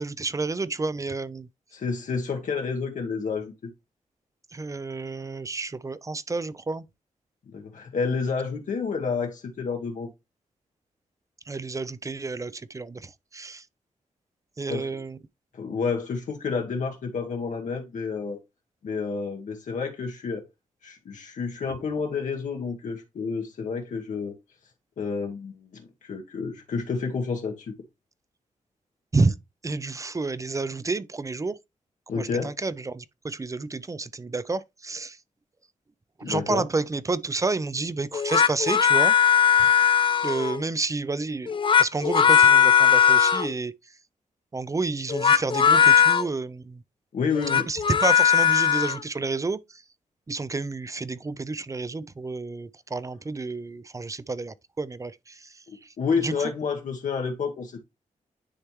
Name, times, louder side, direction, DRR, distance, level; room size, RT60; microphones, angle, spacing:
voice 1, 0.0-1.5 4.5-6.8 11.5-13.6 14.6-15.2 29.1-29.4 29.6-31.6 32.2-35.2 36.2-39.2 39.6-39.7 40.2-43.7 44.5-46.8 47.7-49.6 50.3-55.4 56.2-56.3, right 3 dB, 25° right, 0.4 m, -30 dB
voice 2, 1.7-3.7 7.5-10.1 14.7-14.9 15.5-18.4 18.8-20.5 20.8-24.4 25.0-27.7 32.1-32.5 36.2-36.7 47.1-47.7 55.7-57.8, left 5 dB, 70° left, 1.1 m, -30 dB
sound 1, 38.1-40.6 41.5-43.5 45.1-46.2 47.3-49.0, left 8 dB, 40° left, 0.4 m, -19 dB
9.8 x 3.4 x 3.0 m
cardioid pair, 85°, 13 cm